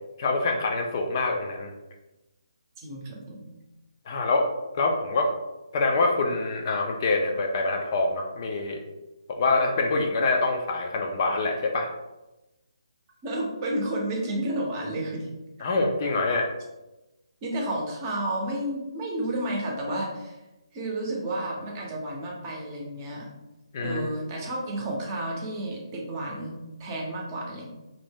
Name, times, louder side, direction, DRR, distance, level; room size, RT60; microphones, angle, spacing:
voice 1, 0.2-1.7 4.1-4.5 4.7-5.3 5.7-8.8 9.4-11.9 15.6-16.5 23.7-24.1, left 3 dB, 40° left, 2 dB, 0.4 m, -25 dB
voice 2, 2.8-3.5 13.2-15.3 17.4-20.4 20.7-23.3 23.8-27.7, right 1 dB, 30° right, -1 dB, 0.7 m, -31 dB
2.6 x 2.1 x 3.4 m, 1.0 s
figure-of-eight pair, 145°, 3 cm